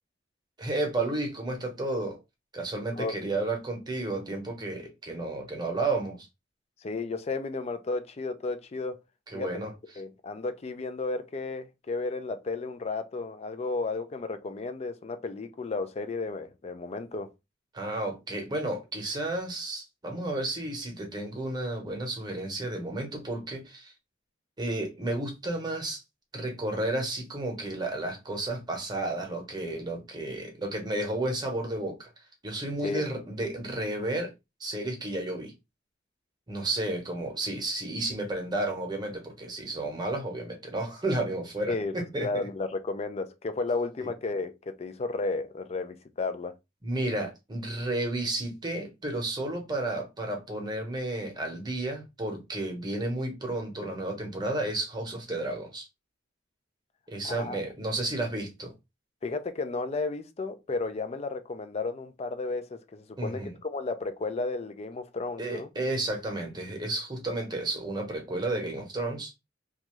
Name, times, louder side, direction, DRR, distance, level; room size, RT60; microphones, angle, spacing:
voice 1, 0.6-2.2 2.5-6.3 9.3-9.7 17.7-23.9 24.6-26.0 26.3-32.1 32.4-34.3 34.6-35.5 36.5-42.3 46.8-55.9 57.1-58.7 63.2-63.5 65.4-69.3, right 2 dB, 25° right, 0.9 m, -32 dB
voice 2, 6.8-9.0 9.3-9.5 10.0-17.3 32.8-33.1 41.7-46.5 57.2-57.6 59.2-65.7, left 3 dB, 35° left, 0.4 m, -33 dB
2.6 x 2.3 x 3.0 m
head